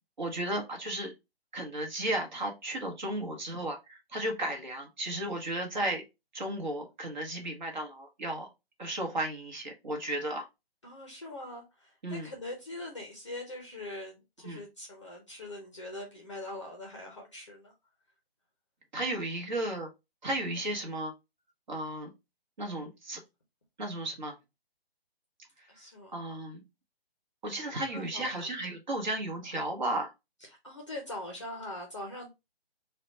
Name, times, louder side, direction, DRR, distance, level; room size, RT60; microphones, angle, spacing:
voice 1, 0.2-1.1 1.5-6.0 6.3-8.5 8.8-10.5 12.0-12.3 14.4-14.6 18.9-19.9 20.2-21.1 21.7-22.1 22.6-23.2 23.8-24.3 25.6-25.7 26.1-26.6 27.4-30.1, right 1 dB, 45° right, 1.1 m, -34 dB
voice 2, 10.8-17.7 25.7-26.2 27.9-28.5 30.4-32.3, left 1 dB, 30° left, 0.6 m, -42 dB
3.9 x 2.2 x 3.8 m
hypercardioid pair, 170°, 31 cm